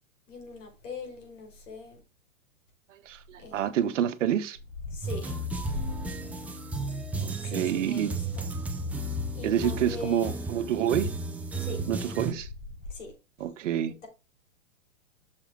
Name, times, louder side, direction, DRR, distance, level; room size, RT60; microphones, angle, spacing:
voice 1, 0.3-2.0 3.4-3.8 4.8-6.1 7.4-8.5 9.3-10.4 11.6-11.8 12.8-13.1 13.9-14.1, left 3 dB, 65° left, 5.1 m, -40 dB
voice 2, 3.1-4.6 7.1-8.1 9.4-11.1 11.9-12.5 13.4-13.9, right 10 dB, 60° right, 1.1 m, -28 dB
sound 1, 5.0-12.3, right 2 dB, 5° right, 0.6 m, -34 dB
8.2 x 6.5 x 3.7 m
hypercardioid pair, 140°, 41 cm